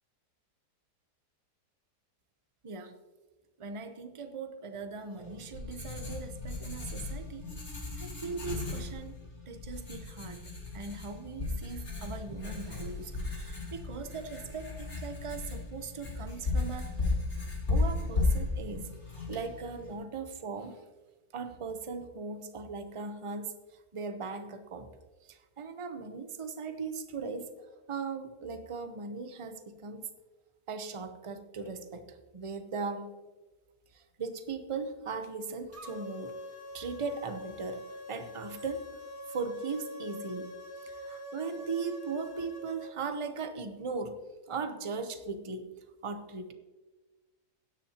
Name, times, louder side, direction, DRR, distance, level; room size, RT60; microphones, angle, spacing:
voice 1, 2.6-3.0 3.6-7.5 8.0-9.2 9.5-10.5 10.7-16.9 17.7-18.9 19.3-20.8 21.3-23.6 23.9-24.9 25.3-27.5 27.9-30.0 30.7-33.2 33.9-36.3 36.7-37.8 38.1-38.8 39.3-40.5 40.8-44.2 44.5-45.7 46.0-46.5, right 4 dB, 30° right, 8 dB, 0.6 m, -39 dB
Writing, 5.1-19.9, left 3 dB, 40° left, 3.3 m, -35 dB
sound 1, 35.7-42.9, left 1 dB, 10° right, 1.6 m, -44 dB
17.0 x 10.5 x 2.9 m, 1.2 s
omnidirectional pair, 1.8 m